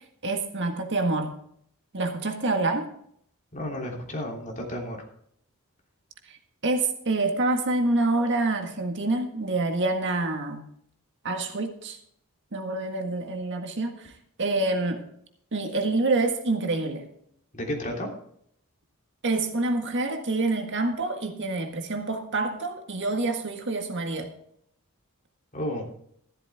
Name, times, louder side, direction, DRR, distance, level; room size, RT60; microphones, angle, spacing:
voice 1, 0.2-1.3 1.9-2.9 6.3-6.4 6.6-10.6 11.2-12.0 12.5-14.1 14.4-15.0 15.5-17.1 19.2-24.3, right 2 dB, 55° right, 4 dB, 1.7 m, -27 dB
voice 2, 3.5-5.0 17.5-18.1 25.5-25.9, left 1 dB, 35° left, 0 dB, 3.2 m, -32 dB
14.0 x 12.5 x 3.6 m, 0.69 s
head